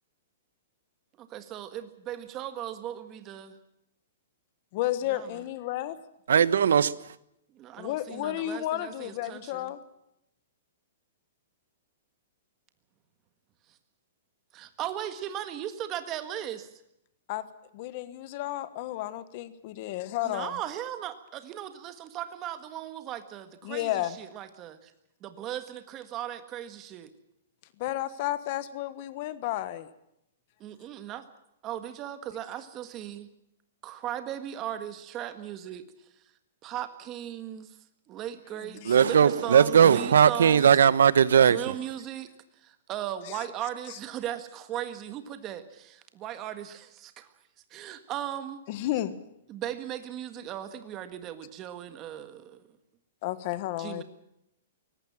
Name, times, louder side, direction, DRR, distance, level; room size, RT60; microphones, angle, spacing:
voice 1, 1.3-3.6 5.1-5.4 7.5-9.7 14.5-16.7 20.2-24.9 25.2-27.1 30.6-31.2 31.6-33.3 33.8-35.8 36.6-37.8 38.1-40.7 41.4-42.3 42.6-47.3 47.7-48.6 49.5-52.6 53.8-54.0, right 11 dB, 20° right, 1.6 m, -37 dB
voice 2, 4.7-6.0 7.8-9.8 17.3-17.4 17.7-20.5 23.6-24.2 27.8-29.9 38.8-39.0 43.3-43.4 48.7-49.2 53.2-54.0, left 14 dB, 35° left, 1.3 m, -32 dB
voice 3, 6.3-6.9 38.9-41.6, right 8 dB, 85° right, 1.1 m, -19 dB
23.5 x 18.5 x 7.4 m
hypercardioid pair, 170°, 0 cm